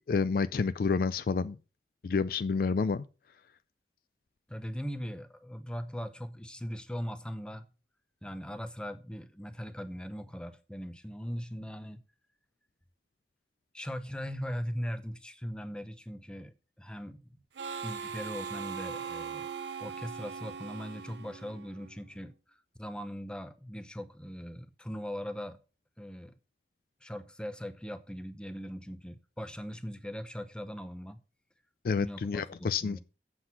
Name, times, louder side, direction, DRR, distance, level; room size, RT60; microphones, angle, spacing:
voice 1, 0.1-1.6 2.0-3.0 31.8-33.0, left 5 dB, 55° left, 0.3 m, -29 dB
voice 2, 4.5-7.6 8.2-12.0 13.7-17.4 17.8-19.5 19.8-25.6 26.0-26.4 27.0-31.2 32.0-33.0, equal, 5° left, 0.7 m, -40 dB
Harmonica, 17.5-22.0, right 6 dB, 80° right, 0.6 m, -40 dB
7.9 x 6.0 x 5.6 m
head